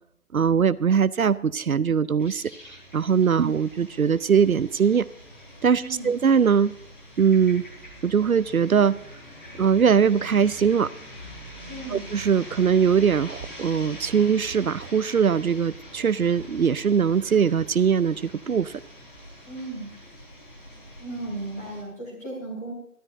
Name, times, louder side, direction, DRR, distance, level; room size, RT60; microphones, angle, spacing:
voice 1, 0.3-5.0 5.6-6.7 7.2-7.6 8.0-8.9 9.5-10.9 11.9-18.8, right 7 dB, 75° right, 17 dB, 0.6 m, -21 dB
sound 1, 2.2-21.8, equal, 35° left, 4.7 m, -44 dB
voice 2, 5.8-6.1 11.7-12.1 19.4-19.9 21.0-22.7, right 2 dB, 10° left, -5 dB, 3.0 m, -35 dB
24.0 x 13.0 x 2.6 m, 0.72 s
figure-of-eight pair, 175°, 43 cm